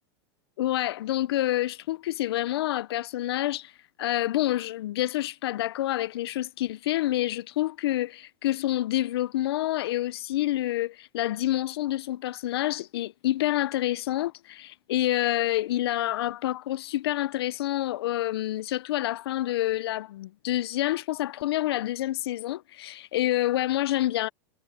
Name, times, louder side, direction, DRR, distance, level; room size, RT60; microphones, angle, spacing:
voice 1, 0.6-3.7 4.0-24.3, left 14 dB, 75° left, 0.9 m, -28 dB
hypercardioid pair, 110°, 13 cm